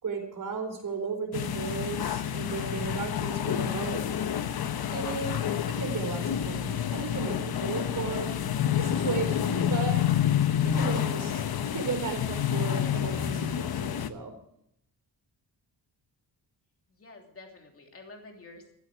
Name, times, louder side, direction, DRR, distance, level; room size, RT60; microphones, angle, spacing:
voice 1, 0.0-4.1 4.9-5.4 5.7-8.3 8.7-10.1 10.6-11.4 11.7-14.3, right 5 dB, 45° right, 3 dB, 4.2 m, -35 dB
sound 1, 1.3-14.1, left 9 dB, 60° left, 1.0 m, -29 dB
voice 2, 16.9-18.7, left 2 dB, 30° left, 2 dB, 3.0 m, -49 dB
14.5 x 13.0 x 4.9 m, 0.74 s
wide cardioid pair, 175°, 42 cm